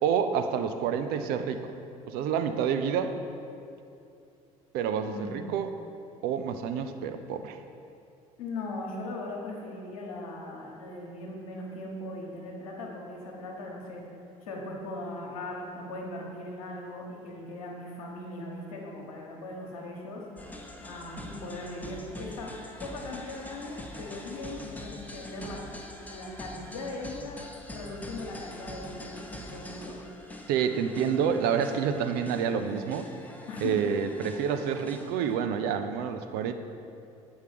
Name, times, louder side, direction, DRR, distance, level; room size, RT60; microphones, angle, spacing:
voice 1, 0.0-1.7 2.0-3.1 4.7-5.7 6.2-7.6 30.5-33.1 33.6-36.5, right 7 dB, 60° right, 8 dB, 0.5 m, -28 dB
voice 2, 5.1-5.5 8.4-14.0 14.4-20.2 20.8-22.5 22.8-25.6 26.0-27.4 27.7-30.0 33.5-33.9, left 2 dB, 75° left, -1 dB, 1.1 m, -39 dB
sound 1, 20.4-35.4, left 1 dB, 10° left, 0.8 m, -44 dB
7.9 x 4.8 x 5.0 m, 2.6 s
figure-of-eight pair, 55°, 18 cm